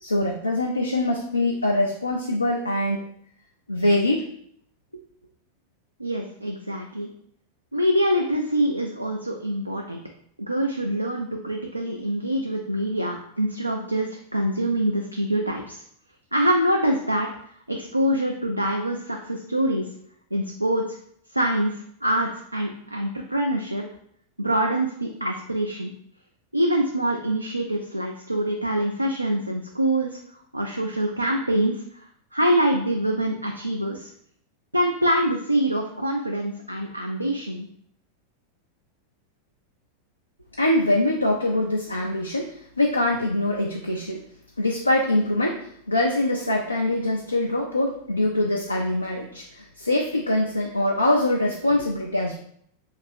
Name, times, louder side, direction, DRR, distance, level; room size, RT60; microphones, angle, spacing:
voice 1, 0.0-3.0 3.7-4.3 40.6-44.2 44.6-52.4, left 1 dB, 85° left, 0 dB, 0.3 m, -23 dB
voice 2, 6.0-7.1 7.7-10.0 10.4-15.8 16.3-17.3 17.7-19.9 20.3-21.0 21.3-23.8 24.4-25.9 26.5-30.2 30.5-34.1 34.7-37.7, right 1 dB, 85° right, 1 dB, 0.3 m, -25 dB
2.8 x 2.4 x 3.3 m, 0.67 s
figure-of-eight pair, 90°, 0 cm